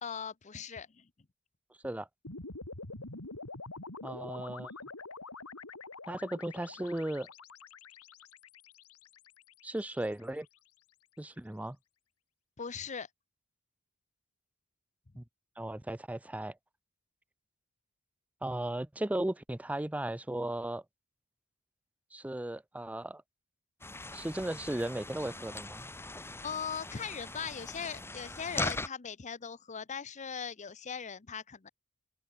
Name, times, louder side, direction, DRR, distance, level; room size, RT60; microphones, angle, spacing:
voice 1, 0.0-1.1 12.6-13.1 26.4-31.7, left 6 dB, 35° left, 0.7 m, -39 dB
sound 1, 2.2-10.5, left 3 dB, 90° left, 3.3 m, -47 dB
voice 2, 4.0-4.7 6.1-7.3 9.6-10.5 11.2-11.8 15.2-15.3 15.6-16.5 18.4-20.8 22.1-23.2 24.1-25.9, right 1 dB, 5° right, 0.4 m, -36 dB
sound 2, 23.8-28.9, left 2 dB, 10° left, 1.4 m, -40 dB
open air
head